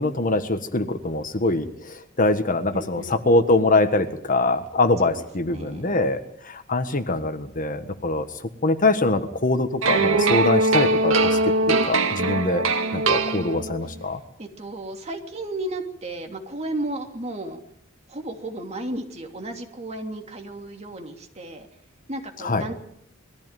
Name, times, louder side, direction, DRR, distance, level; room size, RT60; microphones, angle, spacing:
voice 1, 0.0-8.3 8.6-12.6 12.9-14.2 22.4-22.6, left 2 dB, 40° left, 9 dB, 1.5 m, -23 dB
voice 2, 2.7-3.2 5.0-6.0 14.4-17.6 18.1-21.7 22.1-22.7, right 1 dB, 35° right, 4 dB, 2.9 m, -34 dB
sound 1, 9.8-13.9, right 3 dB, 85° right, 2.0 m, -21 dB
21.5 x 14.5 x 9.2 m, 0.71 s
head